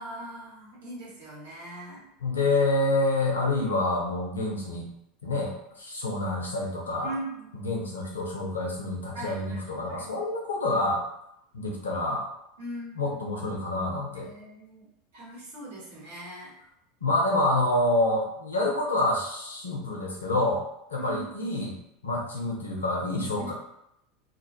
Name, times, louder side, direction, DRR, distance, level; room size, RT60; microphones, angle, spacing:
voice 1, 0.0-2.0 7.0-8.2 9.1-9.6 9.8-10.1 12.6-13.3 14.1-14.9 15.1-16.5 20.9-21.2 23.4-23.5, right 1 dB, 70° right, -5 dB, 1.0 m, -41 dB
voice 2, 2.2-4.9 5.2-7.1 7.5-11.1 11.5-12.3 13.0-14.3 17.0-20.6 20.9-21.7 22.0-23.5, left 2 dB, 80° left, -2 dB, 0.5 m, -27 dB
2.2 x 2.0 x 2.9 m, 0.79 s
figure-of-eight pair, 75°, 0 cm